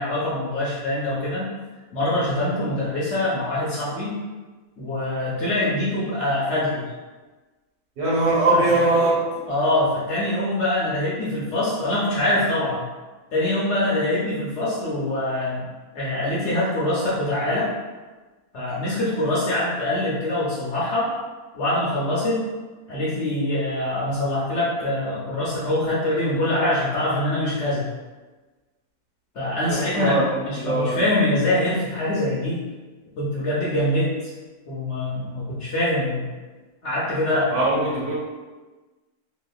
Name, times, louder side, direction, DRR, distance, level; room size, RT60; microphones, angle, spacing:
voice 1, 0.0-1.5 1.9-4.2 4.8-6.9 8.5-8.9 9.4-12.9 13.3-17.7 18.5-21.1 21.5-22.4 22.9-27.8 29.3-32.6 33.2-34.1 34.7-36.3 36.8-37.5, left 1 dB, 60° left, -7 dB, 0.8 m, -24 dB
voice 2, 8.0-9.2 29.7-30.3 30.6-31.0 37.5-38.1, right 2 dB, 85° right, -6 dB, 1.4 m, -21 dB
2.8 x 2.4 x 2.2 m, 1.3 s
omnidirectional pair, 1.6 m